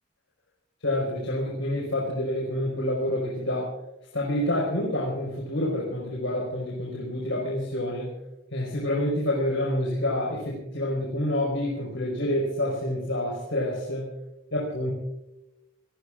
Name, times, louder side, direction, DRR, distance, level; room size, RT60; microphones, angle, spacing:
voice 1, 0.8-3.7 4.1-8.2 8.5-14.1 14.5-14.9, left 1 dB, 80° left, -3 dB, 4.9 m, -28 dB
28.0 x 18.5 x 2.5 m, 1.0 s
head